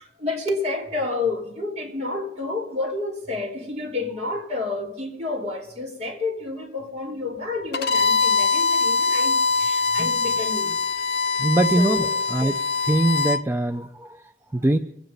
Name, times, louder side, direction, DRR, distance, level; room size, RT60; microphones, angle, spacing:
voice 1, 0.0-10.7 11.8-12.1, left 3 dB, 40° right, 3.2 m, -30 dB
Bowed string instrument, 7.7-13.4, left 4 dB, 60° left, 0.6 m, -23 dB
voice 2, 11.4-12.6 12.8-14.8, right 1 dB, 15° right, 0.5 m, -23 dB
24.0 x 8.8 x 5.3 m
head